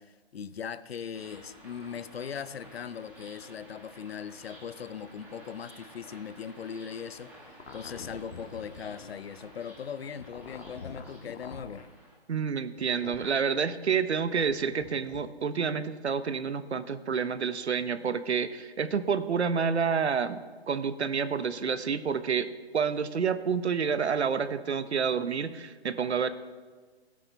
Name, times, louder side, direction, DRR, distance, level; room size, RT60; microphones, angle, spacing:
voice 1, 0.0-7.3 7.7-11.8, left 7 dB, 65° left, 0.7 m, -39 dB
sound 1, 1.1-12.1, equal, 5° right, 1.1 m, -52 dB
sound 2, 7.6-9.2 10.1-11.9 12.8-13.4 14.3-15.2, left 4 dB, 90° left, 1.5 m, -45 dB
voice 2, 12.3-20.4 20.7-26.3, right 6 dB, 85° right, 1.0 m, -29 dB
17.5 x 8.7 x 3.4 m
hypercardioid pair, 165°, 32 cm